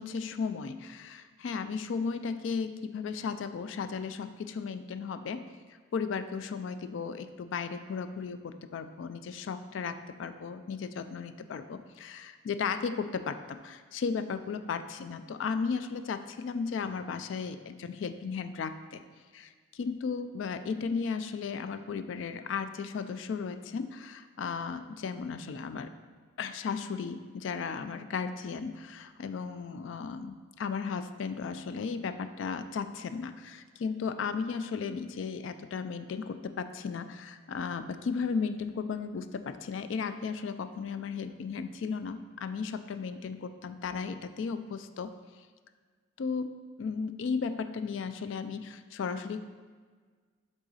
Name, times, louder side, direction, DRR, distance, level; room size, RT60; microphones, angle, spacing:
voice 1, 0.0-5.4 5.9-19.0 19.3-25.9 26.4-45.1 46.2-46.5 46.8-49.4, left 5 dB, 70° left, 10 dB, 0.3 m, -35 dB
7.7 x 3.7 x 4.1 m, 1.6 s
head